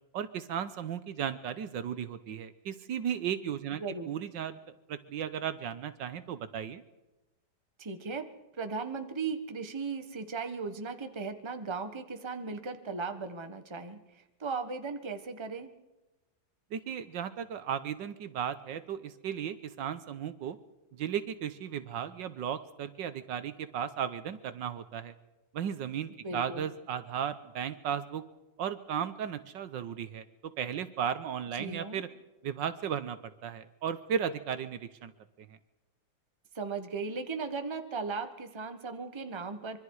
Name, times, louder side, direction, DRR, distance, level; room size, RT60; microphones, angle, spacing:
voice 1, 0.1-4.6 4.9-6.8 16.7-20.6 20.9-25.1 25.5-28.2 28.6-30.2 30.6-32.1 32.4-35.1, right 8 dB, 75° right, 12 dB, 1.6 m, -35 dB
voice 2, 3.8-4.1 7.8-8.3 8.6-15.7 26.2-26.7 31.6-32.0 36.5-39.8, right 4 dB, 15° right, 7 dB, 1.2 m, -37 dB
25.0 x 24.0 x 4.9 m, 1.0 s
omnidirectional pair, 2.1 m